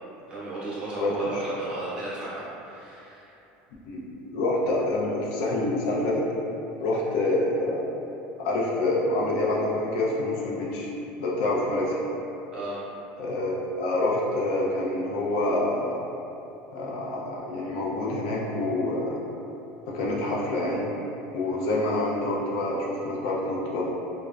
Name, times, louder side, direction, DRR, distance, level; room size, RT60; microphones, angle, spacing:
voice 1, 0.3-3.3 12.5-12.8, right 1 dB, 20° right, -10 dB, 0.7 m, -34 dB
voice 2, 1.0-1.4 3.9-4.0 4.3-6.3 6.8-7.8 8.4-10.9 11.2-12.0 13.2-16.0 16.7-19.2 19.9-20.8 21.3-23.8, left 2 dB, 70° left, -4 dB, 0.4 m, -27 dB
3.1 x 2.0 x 2.4 m, 2.9 s
cardioid pair, 160°, 4 cm